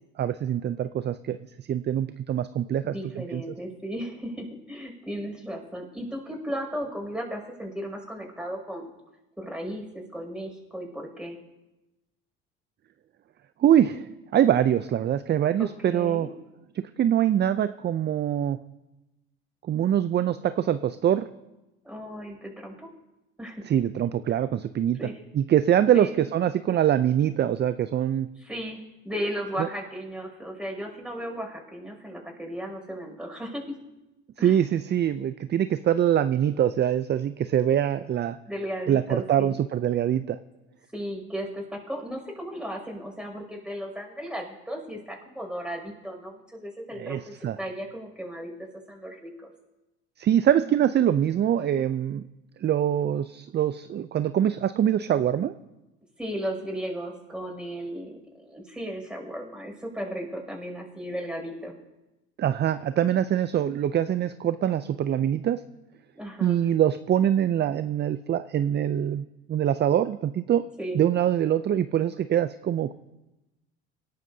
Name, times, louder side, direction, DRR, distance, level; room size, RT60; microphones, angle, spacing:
voice 1, 0.2-2.9 3.3-3.4 13.6-16.3 17.0-18.6 19.7-21.3 23.6-25.0 25.3-28.3 29.6-29.7 34.4-38.4 38.9-40.4 47.0-47.6 50.2-52.3 52.6-55.5 62.4-65.6 66.4-70.6 70.9-72.9, right 10 dB, 30° right, 13 dB, 0.5 m, -24 dB
voice 2, 2.8-8.9 9.4-11.4 15.6-16.3 21.8-22.9 23.4-23.6 25.0-25.1 25.9-26.2 28.4-33.6 34.4-34.6 38.5-39.5 40.9-48.5 48.9-49.3 56.2-61.7 66.1-66.6 70.8-71.0, equal, 5° right, 0 dB, 6.3 m, -35 dB
26.0 x 11.5 x 2.8 m, 1.0 s
hypercardioid pair, 75°, 33 cm